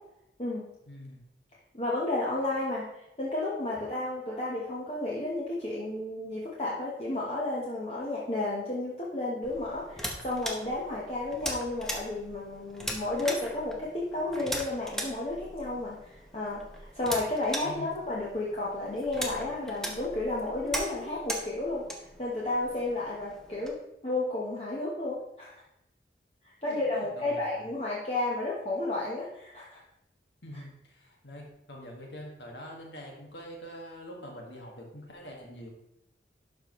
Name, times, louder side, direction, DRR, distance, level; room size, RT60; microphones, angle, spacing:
voice 1, 0.9-1.2 17.6-18.0 26.6-27.7 30.4-35.7, equal, 80° left, 0 dB, 1.9 m, -45 dB
voice 2, 1.7-2.9 3.2-21.8 22.2-25.5 26.6-29.8, left 2 dB, 35° left, -5 dB, 1.2 m, -32 dB
sound 1, 9.4-23.7, equal, ahead, 0.9 m, -40 dB
11.5 x 5.3 x 3.1 m, 0.85 s
head